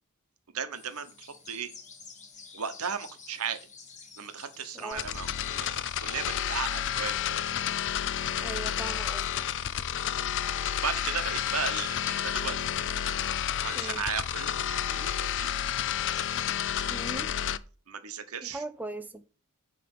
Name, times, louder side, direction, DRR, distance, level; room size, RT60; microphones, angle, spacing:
voice 1, 0.5-1.7 2.5-3.6 4.2-7.4 10.8-12.6 13.6-15.6 17.9-18.6, right 6 dB, 70° right, 1.0 m, -36 dB
sound 1, 0.7-17.1, left 5 dB, 35° left, 1.5 m, -53 dB
sound 2, 4.9-17.6, left 10 dB, 55° left, 0.4 m, -30 dB
voice 2, 8.4-9.3 13.7-14.0 16.9-17.3 18.4-19.2, right 2 dB, 10° right, 0.4 m, -39 dB
9.6 x 3.3 x 6.6 m
head